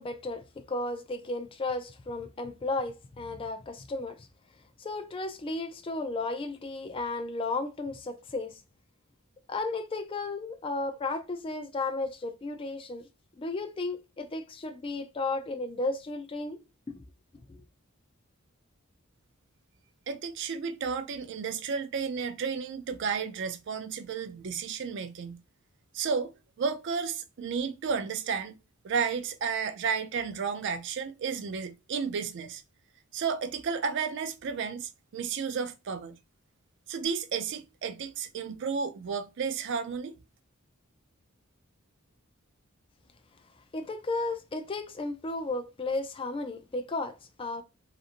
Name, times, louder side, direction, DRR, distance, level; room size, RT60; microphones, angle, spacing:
voice 1, 0.0-4.3 4.8-8.6 9.5-13.1 13.4-16.6 16.9-17.0 17.5-17.6 43.7-47.6, left 2 dB, 25° left, 0.3 m, -34 dB
voice 2, 20.1-25.4 25.9-26.3 26.6-28.5 28.8-32.6 33.1-36.2 36.9-40.1, right 6 dB, 55° right, 0.4 m, -32 dB
2.9 x 2.5 x 2.4 m
head